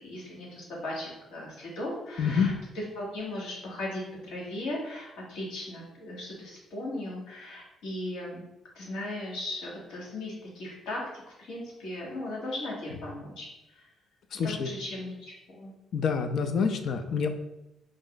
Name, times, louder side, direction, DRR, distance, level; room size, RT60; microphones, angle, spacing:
voice 1, 0.0-8.4 8.7-11.0 11.4-13.9 14.4-15.7, left 1 dB, 85° left, -4 dB, 1.3 m, -37 dB
voice 2, 2.2-2.5 14.3-14.7 15.9-17.3, left 6 dB, 65° left, 7 dB, 0.4 m, -27 dB
3.6 x 2.1 x 3.8 m, 0.91 s
cardioid pair, 90°, 0 cm